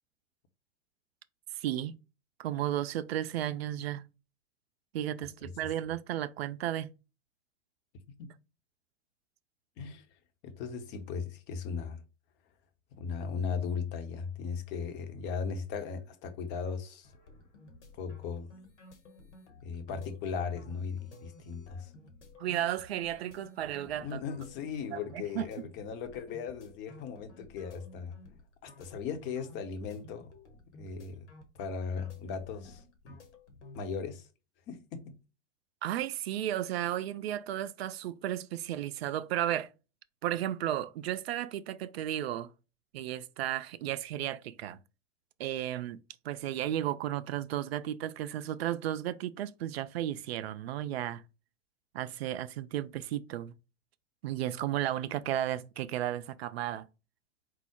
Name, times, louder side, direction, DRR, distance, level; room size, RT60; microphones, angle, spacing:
voice 1, 1.5-2.0 2.4-4.0 4.9-6.9 22.4-24.2 24.9-25.7 35.8-39.7 40.2-42.5 42.9-44.8 45.4-51.2 51.9-53.5 54.2-56.9, right 12 dB, 55° right, 0.5 m, -34 dB
voice 2, 10.4-12.0 12.9-17.1 18.0-18.5 19.6-21.9 24.0-28.1 28.6-30.3 30.8-31.3 31.6-33.2 33.7-34.3 34.7-35.1, left 6 dB, 30° left, 0.7 m, -37 dB
sound 1, 17.0-33.8, left 1 dB, 65° left, 1.4 m, -54 dB
4.6 x 2.0 x 4.4 m
figure-of-eight pair, 105°, 37 cm